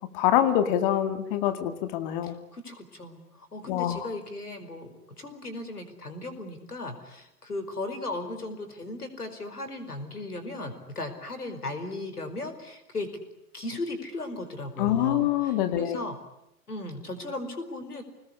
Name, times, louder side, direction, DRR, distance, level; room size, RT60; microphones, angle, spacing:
voice 1, 0.1-2.3 3.7-4.1 14.8-16.0, left 11 dB, 35° left, 8 dB, 2.1 m, -25 dB
voice 2, 2.2-13.1 13.5-16.2 16.7-18.0, left 2 dB, 75° left, 8 dB, 5.0 m, -36 dB
27.0 x 20.0 x 9.9 m, 0.81 s
figure-of-eight pair, 110°, 46 cm